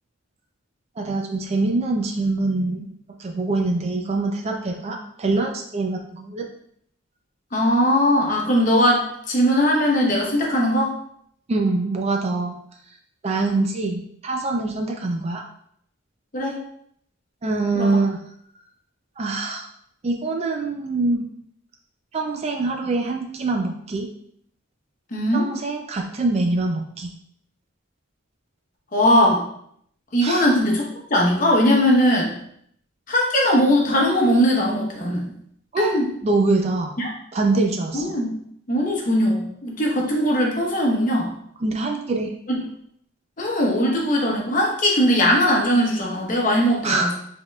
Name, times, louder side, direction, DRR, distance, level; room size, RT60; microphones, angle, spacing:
voice 1, 1.0-2.9 3.2-6.5 11.5-12.5 12.9-13.0 13.2-15.4 17.4-18.2 19.2-19.7 20.0-21.2 22.1-24.1 25.3-27.1 30.2-30.5 35.7-35.9 36.2-37.0 37.3-38.1 41.6-42.3 46.8-47.1, right 3 dB, 30° right, 3 dB, 0.4 m, -24 dB
voice 2, 7.5-10.9 16.3-16.6 17.8-17.9 25.1-25.5 28.9-29.4 30.1-32.3 33.1-35.3 35.8-36.1 37.0-37.1 37.9-38.3 38.7-41.3 42.5-42.6 43.4-47.1, equal, 40° left, -1 dB, 0.9 m, -20 dB
5.1 x 3.6 x 2.3 m, 0.68 s
head